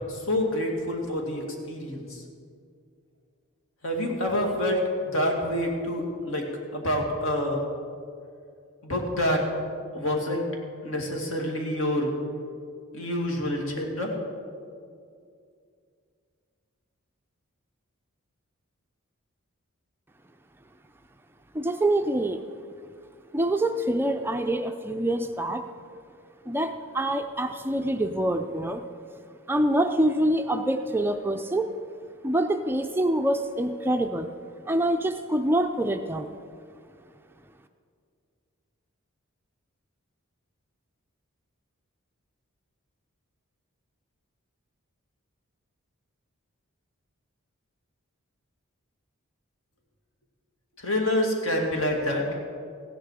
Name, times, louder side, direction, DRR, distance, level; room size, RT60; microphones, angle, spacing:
voice 1, 0.1-2.2 3.8-7.6 8.8-9.4 9.9-10.4 10.8-12.1 12.9-14.1 50.8-52.2, left 1 dB, 65° left, 1 dB, 2.2 m, -27 dB
voice 2, 21.5-22.4 23.3-25.6 26.5-28.8 29.5-31.7 32.2-34.3 34.7-36.4, right 1 dB, 10° right, 6 dB, 0.4 m, -25 dB
15.5 x 10.5 x 4.8 m, 2.3 s
head